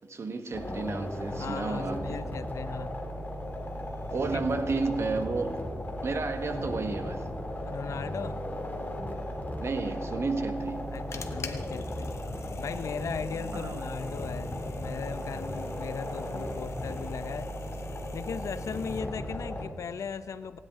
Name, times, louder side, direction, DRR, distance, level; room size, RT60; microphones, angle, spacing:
voice 1, 0.1-2.2 4.1-5.6 6.0-7.2 9.6-10.9 13.0-13.1 13.5-13.8, right 3 dB, 60° right, 7 dB, 1.4 m, -32 dB
sound 1, 0.5-19.7, left 1 dB, 35° left, 2.6 m, -36 dB
voice 2, 1.3-3.0 4.3-4.4 7.7-8.4 10.9-12.2 12.6-17.5 18.1-20.6, left 6 dB, 85° left, 13 dB, 0.6 m, -37 dB
sound 2, 10.6-19.0, left 5 dB, 65° left, 1.2 m, -48 dB
30.0 x 10.5 x 3.7 m, 2.2 s
cardioid pair, 75°, 5 cm